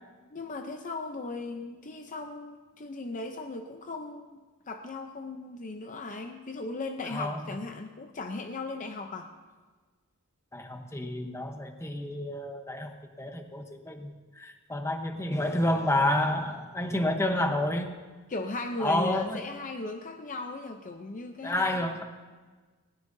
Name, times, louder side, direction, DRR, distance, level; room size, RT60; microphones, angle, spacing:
voice 1, 0.3-4.4 4.7-9.3 17.4-17.5 18.3-21.9, left 3 dB, 35° left, 5 dB, 0.6 m, -37 dB
voice 2, 7.1-7.4 10.5-18.0 18.8-19.4 21.4-22.0, left 1 dB, 10° left, 5 dB, 0.9 m, -29 dB
19.5 x 16.5 x 2.7 m, 1.4 s
head